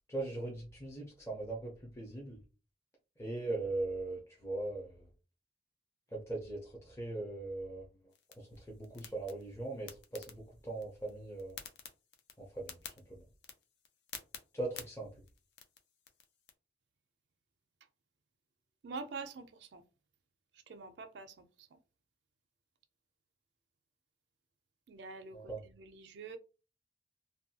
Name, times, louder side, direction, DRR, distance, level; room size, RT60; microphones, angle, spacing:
voice 1, 0.1-2.4 3.2-5.1 6.1-7.9 8.4-11.6 12.4-13.2 14.5-15.1 25.3-25.6, right 2 dB, 15° left, 0.6 m, -40 dB
sound 1, 8.1-16.5, left 7 dB, 75° left, 0.5 m, -53 dB
voice 2, 18.8-19.8 20.7-21.3 21.7-21.8 24.9-26.4, right 4 dB, 75° right, 0.4 m, -46 dB
2.6 x 2.2 x 2.7 m
head